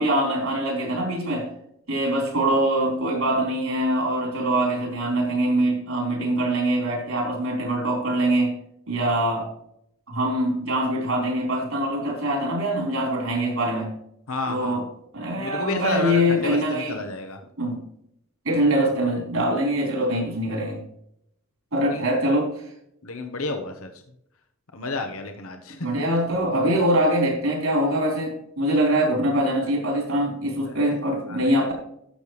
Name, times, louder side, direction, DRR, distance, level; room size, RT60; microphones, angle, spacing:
voice 1, 0.0-1.5 1.9-8.5 8.9-9.5 10.1-13.9 14.5-14.8 15.1-17.0 17.6-17.8 18.4-20.8 21.7-22.5 25.8-31.7, right 1 dB, 70° right, 0 dB, 4.1 m, -23 dB
voice 2, 14.3-14.8 15.4-17.4 21.9-22.1 23.0-23.9 24.7-25.9 30.6-31.0 31.3-31.6, left 3 dB, 75° left, 5 dB, 1.1 m, -31 dB
13.0 x 6.8 x 3.2 m, 0.73 s
head